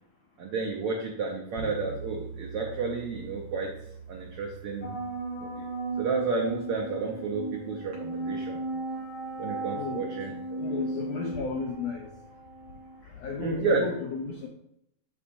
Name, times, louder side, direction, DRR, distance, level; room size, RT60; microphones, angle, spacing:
voice 1, 0.4-3.7 4.1-5.0 5.4-5.6 6.0-8.6 9.4-10.8 13.4-13.8, right 4 dB, 85° right, 0 dB, 1.2 m, -31 dB
sound 1, 1.6-9.7, right 5 dB, 65° right, 1.4 m, -45 dB
sound 2, 4.8-13.0, right 2 dB, 55° left, 1.1 m, -36 dB
voice 2, 9.7-10.1 10.6-12.1 13.0-14.5, left 5 dB, 85° left, 1 dB, 1.5 m, -34 dB
10.0 x 3.9 x 2.6 m, 0.77 s
omnidirectional pair, 3.6 m